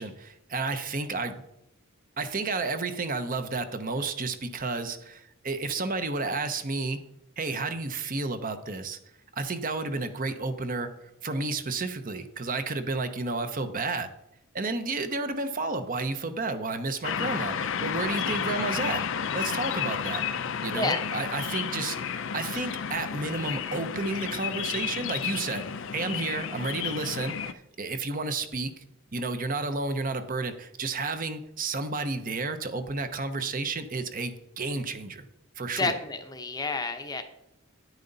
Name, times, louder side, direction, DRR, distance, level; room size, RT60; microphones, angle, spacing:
voice 1, 0.0-1.4 2.2-7.0 7.4-9.0 9.3-10.9 11.2-14.1 14.5-19.0 19.3-20.2 20.6-22.0 22.3-28.8 29.1-35.3 35.6-35.9, right 3 dB, 40° right, 9 dB, 0.8 m, -31 dB
sound 1, 17.0-27.5, left 7 dB, 60° left, 0.5 m, -32 dB
voice 2, 20.7-21.0 35.8-37.2, left 3 dB, 15° left, 7 dB, 0.7 m, -30 dB
9.6 x 9.2 x 4.0 m, 0.80 s
head